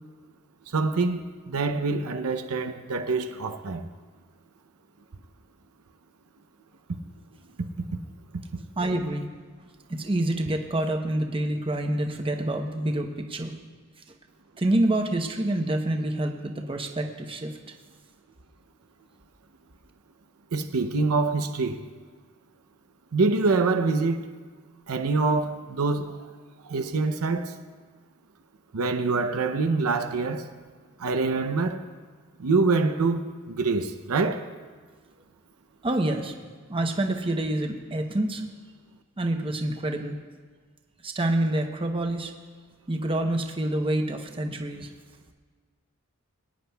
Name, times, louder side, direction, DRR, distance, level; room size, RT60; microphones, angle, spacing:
voice 1, 0.7-3.9 20.5-21.9 23.1-24.2 24.9-26.3 26.6-27.6 28.7-30.5 31.0-31.8 32.4-34.5, right 3 dB, 80° right, 0.7 m, -25 dB
voice 2, 8.8-9.3 9.9-13.5 14.6-17.5 35.8-36.3 36.7-38.4 39.2-40.2 41.0-42.3 42.9-44.9, right 1 dB, 25° right, 0.8 m, -27 dB
23.0 x 9.8 x 2.3 m
head